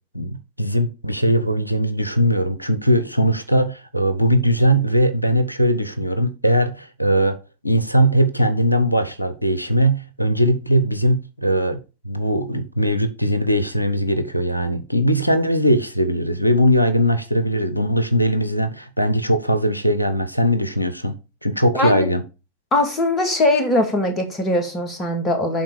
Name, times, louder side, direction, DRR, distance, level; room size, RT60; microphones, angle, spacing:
voice 1, 0.1-7.4 7.6-11.8 12.0-21.1 21.4-22.2, equal, 90° left, 0.6 m, -20 dB
voice 2, 21.7-22.1 22.7-25.6, left 1 dB, 20° left, 2.0 m, -20 dB
9.5 x 3.8 x 4.9 m
figure-of-eight pair, 90°, 0 cm